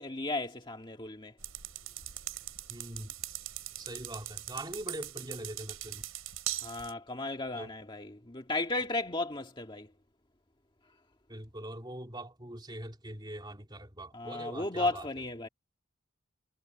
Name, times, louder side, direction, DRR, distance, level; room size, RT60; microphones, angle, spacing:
voice 1, 0.0-1.3 6.6-9.9 14.1-15.5, left 2 dB, 20° left, 1.9 m, -35 dB
sound 1, 1.4-6.9, right 13 dB, 90° right, 5.7 m, -41 dB
voice 2, 2.7-3.2 3.8-6.1 7.5-7.7 11.3-15.1, right 1 dB, 20° right, 3.3 m, -42 dB
head